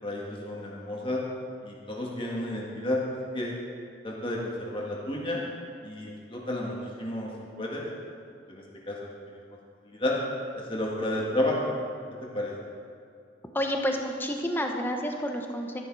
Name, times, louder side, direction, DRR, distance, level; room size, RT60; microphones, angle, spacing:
voice 1, 0.0-1.2 1.6-3.0 3.3-3.5 4.0-5.4 5.8-7.3 7.6-7.8 8.5-9.0 9.8-10.1 10.6-11.7 12.2-12.5, left 1 dB, 25° left, -3 dB, 1.9 m, -31 dB
voice 2, 13.5-15.8, equal, 10° left, 3 dB, 1.0 m, -29 dB
13.0 x 11.0 x 4.8 m, 2.5 s
head